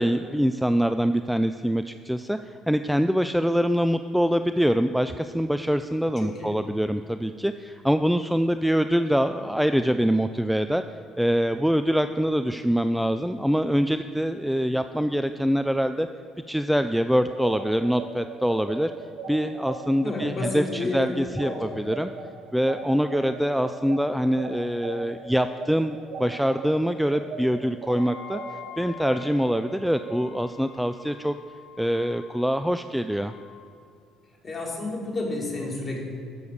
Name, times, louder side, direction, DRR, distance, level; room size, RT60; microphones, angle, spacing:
voice 1, 0.0-10.8 11.2-16.1 16.5-18.9 19.3-22.1 22.5-28.4 28.8-31.3 31.8-33.3, equal, ahead, 9 dB, 0.4 m, -24 dB
voice 2, 6.2-6.6 20.0-21.1 21.4-21.9 34.4-36.0, left 2 dB, 35° left, -2 dB, 3.5 m, -31 dB
sound 1, 17.3-26.7 27.1-30.2, right 6 dB, 70° right, 2.5 m, -38 dB
Wind instrument woodwind instrument, 27.8-33.7, left 7 dB, 75° left, 2.2 m, -46 dB
13.5 x 7.0 x 6.4 m, 2.4 s
supercardioid pair, 80°, 0 cm